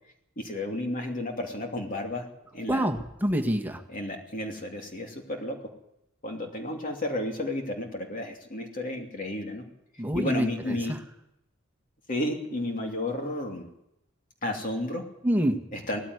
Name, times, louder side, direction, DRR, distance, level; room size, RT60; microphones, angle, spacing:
voice 1, 0.4-2.2 2.5-2.9 3.9-5.6 6.2-9.6 10.1-10.9 12.1-13.7 14.4-15.0 15.7-16.0, left 1 dB, 40° left, 2 dB, 2.8 m, -32 dB
voice 2, 2.7-3.8 10.0-11.0 15.2-15.7, right 1 dB, 10° right, 5 dB, 1.7 m, -27 dB
18.5 x 15.0 x 9.5 m, 0.83 s
head